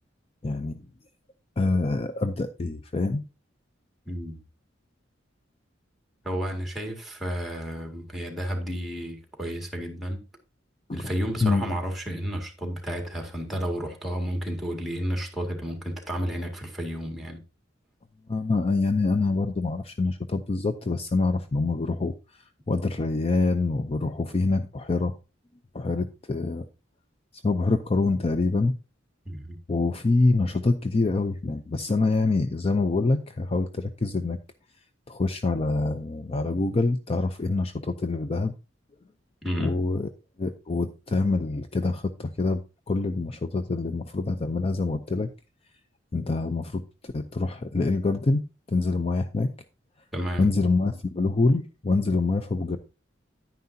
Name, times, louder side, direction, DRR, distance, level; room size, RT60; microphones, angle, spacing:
voice 1, 0.4-0.9 1.6-3.2 10.9-11.1 11.4-11.6 18.3-22.1 22.7-25.1 25.7-26.6 27.4-28.7 29.7-34.4 35.1-38.5 39.6-40.1 40.4-42.6 42.9-45.3 46.1-49.5 50.4-52.8, left 3 dB, 30° left, 0.5 m, -25 dB
voice 2, 4.1-4.4 6.2-10.2 10.9-17.4 29.3-29.6 39.4-39.8 50.1-50.5, equal, ahead, 2.0 m, -31 dB
10.5 x 9.4 x 2.7 m
head